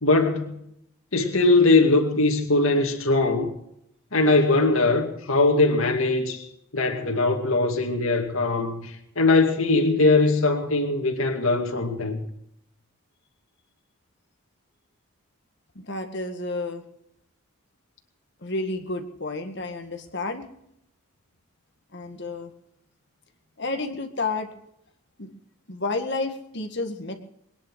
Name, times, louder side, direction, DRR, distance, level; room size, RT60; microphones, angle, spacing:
voice 1, 0.0-0.6 1.1-3.5 4.1-6.5 6.7-12.2, left 2 dB, 65° left, 2.3 m, -21 dB
voice 2, 15.8-16.8 18.4-20.5 21.9-22.5 23.6-24.5 25.2-25.4 25.7-27.1, left 3 dB, 50° left, 1.8 m, -30 dB
22.5 x 10.0 x 6.3 m
head